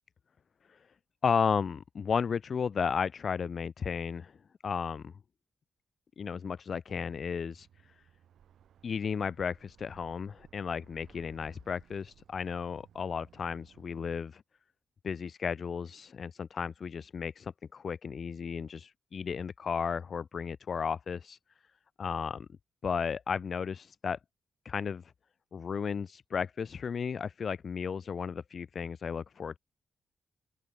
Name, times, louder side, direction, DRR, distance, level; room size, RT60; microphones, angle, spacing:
voice 1, 1.2-4.4 4.6-5.1 6.2-7.9 8.8-14.4 15.0-21.4 22.0-22.5 22.8-24.2 24.6-25.1 25.5-29.6, left 6 dB, 45° left, 0.9 m, -34 dB
sound 1, 6.9-14.2, right 9 dB, 75° right, 4.9 m, -61 dB
open air
wide cardioid pair, 140°, 0 cm